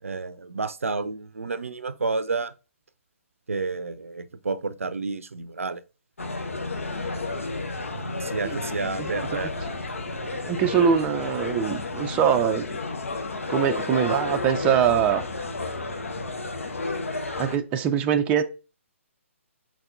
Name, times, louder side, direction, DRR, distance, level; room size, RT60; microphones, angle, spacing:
voice 1, 0.0-2.5 3.5-5.8 7.9-9.5, right 4 dB, 75° right, 0.5 m, -30 dB
sound 1, 6.2-17.6, left 3 dB, 75° left, 0.8 m, -31 dB
voice 2, 9.1-9.5 10.5-12.7 13.5-15.3 17.4-18.4, right 8 dB, 15° right, 0.4 m, -23 dB
4.6 x 4.1 x 2.5 m
figure-of-eight pair, 135°, 7 cm